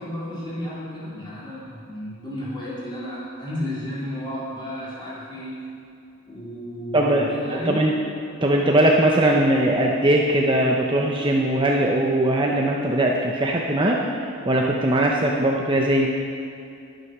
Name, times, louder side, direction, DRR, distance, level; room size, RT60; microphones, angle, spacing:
voice 1, 0.0-5.7 6.3-7.8, equal, 20° left, -8 dB, 3.5 m, -33 dB
voice 2, 6.9-7.9 8.4-16.1, right 1 dB, 20° right, -1 dB, 0.7 m, -20 dB
11.0 x 9.7 x 6.1 m, 2.5 s
head